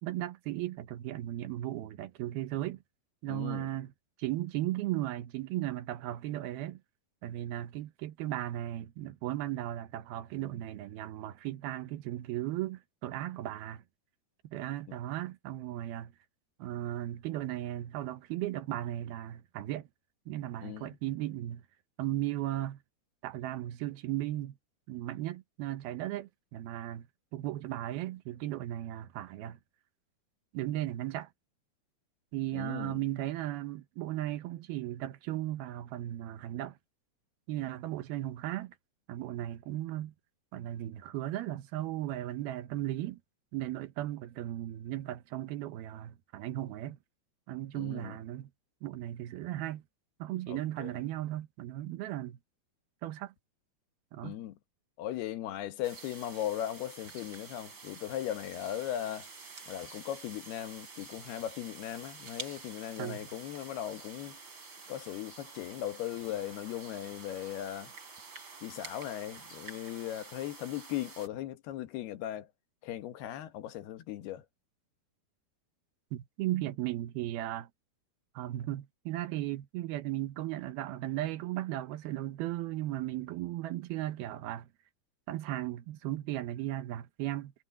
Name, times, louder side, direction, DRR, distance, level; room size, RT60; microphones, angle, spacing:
voice 1, 0.0-2.8 3.2-3.9 4.2-6.8 7.2-13.8 14.4-16.1 16.6-19.9 20.3-21.6 22.0-22.8 23.2-24.6 24.9-27.1 27.3-29.6 30.5-31.3 32.3-36.7 37.5-38.7 39.1-40.1 40.5-43.2 43.5-47.0 47.5-48.5 48.8-49.8 50.2-52.4 53.0-53.3 54.1-54.4 63.0-63.2 76.1-77.7 78.4-84.7 85.3-87.5, right 14 dB, 80° right, 2.9 m, -36 dB
voice 2, 3.3-3.7 14.9-15.0 20.6-21.0 32.5-33.0 47.7-48.2 50.5-50.9 54.2-54.5 55.0-59.3 59.7-64.4 64.9-67.9 68.6-72.5 72.8-74.4, left 12 dB, 90° left, 3.4 m, -38 dB
sound 1, 55.8-71.3, right 4 dB, 30° right, 4.3 m, -49 dB
omnidirectional pair, 4.4 m